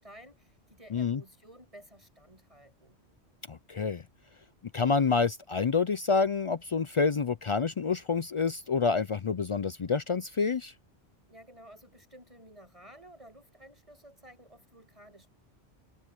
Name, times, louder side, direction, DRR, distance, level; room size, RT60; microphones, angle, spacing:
voice 1, 0.0-3.0 11.3-15.3, right 1 dB, 30° right, 7.9 m, -53 dB
voice 2, 0.9-1.2 3.5-4.0 4.7-10.7, left 5 dB, 55° left, 0.3 m, -28 dB
omnidirectional pair, 1.1 m